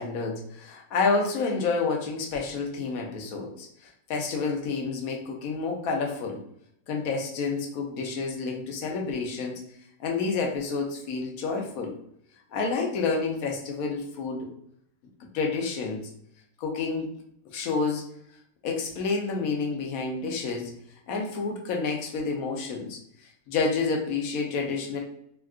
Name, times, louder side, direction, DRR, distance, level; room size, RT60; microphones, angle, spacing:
voice 1, 0.0-6.4 6.9-9.6 10.0-11.9 12.5-14.5 15.3-16.0 16.6-17.1 17.5-18.0 18.6-20.7 21.1-23.0 23.5-25.0, left 4 dB, 70° left, 1 dB, 1.0 m, -29 dB
3.5 x 2.3 x 2.4 m, 0.73 s
omnidirectional pair, 1.7 m